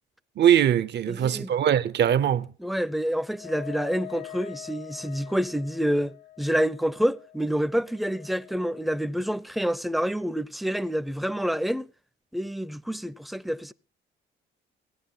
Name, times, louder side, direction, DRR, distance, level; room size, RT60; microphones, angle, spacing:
voice 1, 0.4-2.5, right 10 dB, 60° right, 0.7 m, -21 dB
voice 2, 1.1-1.5 2.6-11.9 12.3-13.7, equal, ahead, 0.6 m, -28 dB
Wind instrument woodwind instrument, 3.3-9.0, left 14 dB, 85° left, 0.9 m, -44 dB
17.0 x 9.8 x 5.5 m
cardioid pair, 90°, 20 cm